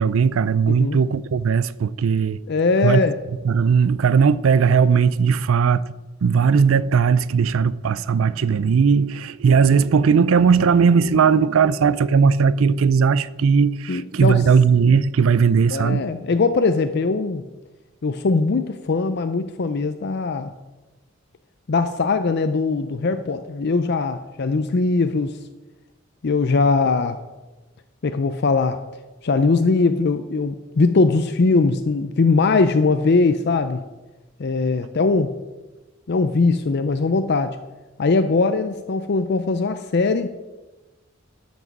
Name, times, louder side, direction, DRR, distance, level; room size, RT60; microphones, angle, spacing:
voice 1, 0.0-2.4 2.8-3.0 3.4-5.8 6.2-16.0, right 6 dB, 85° right, 0.4 m, -18 dB
voice 2, 0.7-1.0 2.5-3.1 13.9-14.4 15.7-17.4 18.0-20.5 21.7-25.4 26.2-27.2 28.0-28.8 29.2-33.8 34.4-35.3 36.1-37.6 38.0-40.3, left 3 dB, 55° left, 0.5 m, -20 dB
12.0 x 6.2 x 6.0 m
head